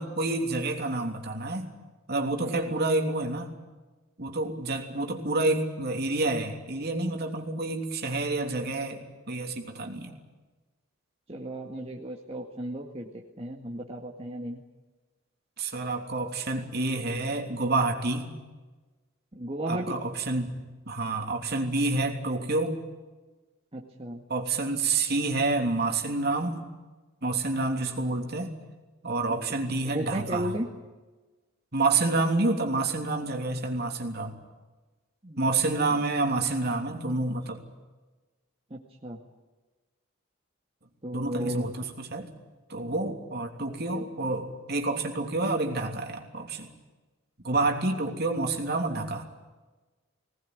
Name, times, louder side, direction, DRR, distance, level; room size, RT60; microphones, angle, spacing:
voice 1, 0.0-1.7 2.1-3.5 4.2-10.1 15.6-18.3 19.7-20.6 20.9-22.8 24.3-26.6 27.2-28.5 29.0-30.5 31.7-34.3 35.4-37.6 41.1-42.3 42.7-46.7 47.4-49.2, right 2 dB, 50° right, 3 dB, 3.2 m, -28 dB
voice 2, 9.8-10.2 11.3-14.6 19.4-20.0 23.7-24.2 29.8-30.7 35.2-35.7 38.7-39.2 41.0-41.7, right 1 dB, 30° right, -1 dB, 1.9 m, -35 dB
21.5 x 19.0 x 9.6 m, 1.2 s
head